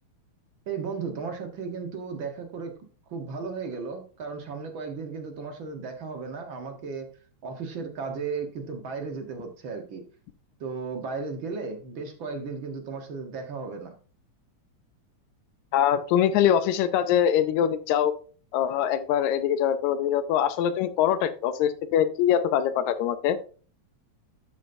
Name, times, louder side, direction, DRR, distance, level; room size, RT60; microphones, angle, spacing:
voice 1, 0.7-2.7 3.1-7.1 7.4-10.0 10.6-13.9, right 5 dB, 55° right, 5 dB, 1.6 m, -35 dB
voice 2, 15.7-18.1 18.5-23.4, left 10 dB, 80° left, 12 dB, 2.0 m, -23 dB
12.0 x 7.2 x 2.6 m, 0.39 s
omnidirectional pair, 3.3 m